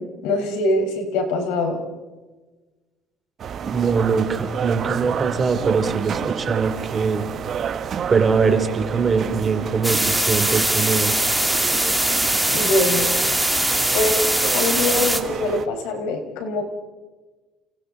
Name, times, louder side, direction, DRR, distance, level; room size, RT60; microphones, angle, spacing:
voice 1, 0.0-1.8 12.5-13.1 13.9-14.2 14.5-16.6, left 2 dB, 85° left, 4 dB, 4.6 m, -23 dB
sound 1, 3.4-15.7, right 7 dB, 45° right, 1.1 m, -30 dB
voice 2, 3.6-7.3 8.1-11.2, right 5 dB, 25° right, 7 dB, 2.9 m, -22 dB
sound 2, 9.8-15.2, right 1 dB, 5° right, 2.4 m, -21 dB
30.0 x 30.0 x 3.9 m, 1.3 s
cardioid pair, 125°, 0 cm